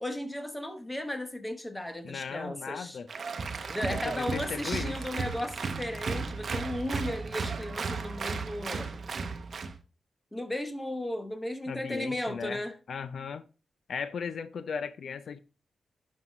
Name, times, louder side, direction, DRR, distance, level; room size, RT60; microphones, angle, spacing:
voice 1, 0.0-3.0 3.7-8.9 10.3-12.7, left 1 dB, 10° left, 1.0 m, -35 dB
voice 2, 2.0-3.1 3.9-4.9 11.7-12.6 12.9-13.4 13.9-15.4, left 6 dB, 65° left, 0.5 m, -36 dB
Applause, 3.1-9.8, right 4 dB, 45° right, 0.8 m, -34 dB
11.0 x 5.5 x 3.0 m
wide cardioid pair, 175°, 0 cm